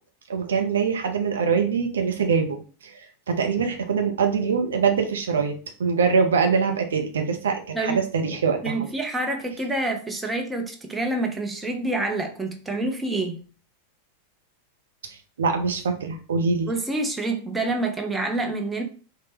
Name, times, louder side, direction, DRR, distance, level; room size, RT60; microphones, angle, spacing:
voice 1, 0.3-5.5 5.8-8.9 15.4-16.7, right 5 dB, 65° right, 4 dB, 0.5 m, -23 dB
voice 2, 8.6-13.4 16.7-18.8, right 2 dB, 10° right, 2 dB, 0.7 m, -27 dB
4.1 x 2.1 x 3.3 m, 0.38 s
figure-of-eight pair, 90°, 0 cm